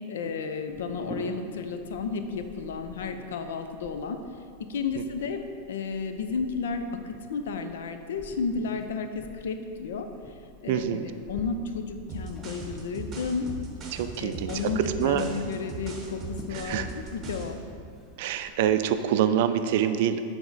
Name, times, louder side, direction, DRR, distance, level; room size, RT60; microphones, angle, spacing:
voice 1, 0.1-4.2 4.6-5.4 5.7-10.1 10.6-13.5 14.2-17.6, left 5 dB, 85° left, 7 dB, 0.5 m, -32 dB
sound 1, 0.7-19.1, left 1 dB, 10° left, 0.5 m, -48 dB
voice 2, 10.7-11.1 13.9-15.3 16.5-16.9 18.2-20.2, right 10 dB, 60° right, 10 dB, 0.3 m, -26 dB
sound 2, 12.1-17.6, right 3 dB, 25° right, 0.9 m, -38 dB
6.9 x 3.5 x 4.0 m, 2.4 s
supercardioid pair, 145°, 0 cm